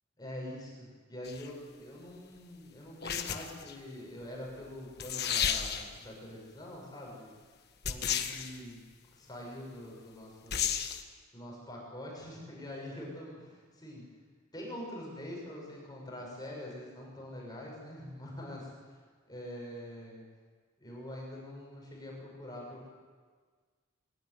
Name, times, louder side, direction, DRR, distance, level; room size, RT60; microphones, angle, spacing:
voice 1, 0.2-7.3 7.8-8.8 9.1-10.8 11.3-14.0 14.5-19.0 19.3-20.2 20.8-22.9, left 1 dB, 20° left, -2 dB, 6.6 m, -44 dB
sound 1, 1.2-1.5 3.0-3.7 4.7-4.8 5.0-6.0 7.8-8.6 10.5-11.0, left 8 dB, 55° left, 1.4 m, -32 dB
23.5 x 17.0 x 9.6 m, 1.5 s
head